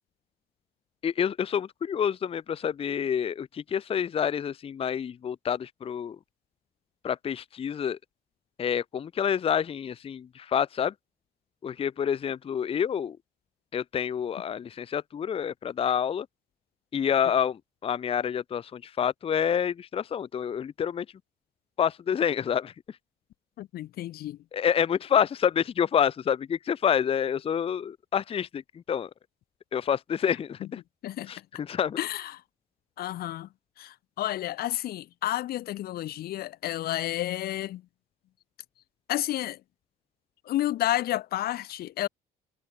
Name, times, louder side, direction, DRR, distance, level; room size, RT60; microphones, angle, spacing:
voice 1, 1.0-6.2 7.0-8.0 8.6-10.9 11.6-13.2 13.7-16.3 16.9-21.1 21.8-22.7 24.5-28.6 28.9-29.1 29.7-30.8 31.3-32.0, left 8 dB, 35° left, 0.7 m, -28 dB
voice 2, 23.6-24.4 30.6-30.7 31.0-31.3 32.0-32.4 33.0-33.5 33.8-37.8 39.1-39.6 40.5-42.1, left 14 dB, 65° left, 0.9 m, -31 dB
cardioid pair, 110°, 17 cm